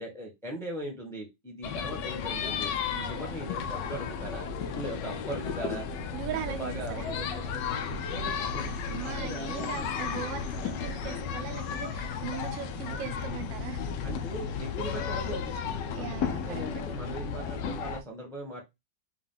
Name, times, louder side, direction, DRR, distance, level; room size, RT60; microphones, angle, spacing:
voice 1, 0.0-2.7 3.0-7.6 8.0-10.0 12.9-13.1 14.0-18.6, right 1 dB, ahead, 0.9 m, -40 dB
sound 1, 1.6-18.0, left 6 dB, 75° left, 1.2 m, -34 dB
voice 2, 6.1-7.1 8.9-13.9 15.9-16.6, right 10 dB, 80° right, 1.3 m, -39 dB
4.6 x 2.3 x 3.7 m
omnidirectional pair, 2.0 m